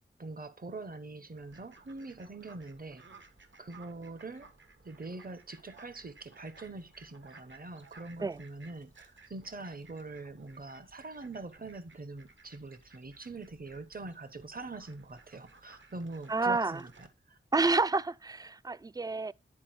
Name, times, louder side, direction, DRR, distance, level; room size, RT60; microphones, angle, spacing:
voice 1, 0.2-3.0 3.6-4.5 4.8-17.4, right 3 dB, 45° right, 1.1 m, -44 dB
Fowl, 1.4-17.1, right 4 dB, 60° right, 1.5 m, -58 dB
voice 2, 16.3-16.8 17.5-19.3, right 3 dB, 20° right, 0.3 m, -29 dB
9.9 x 4.3 x 4.3 m
wide cardioid pair, 65°, 21 cm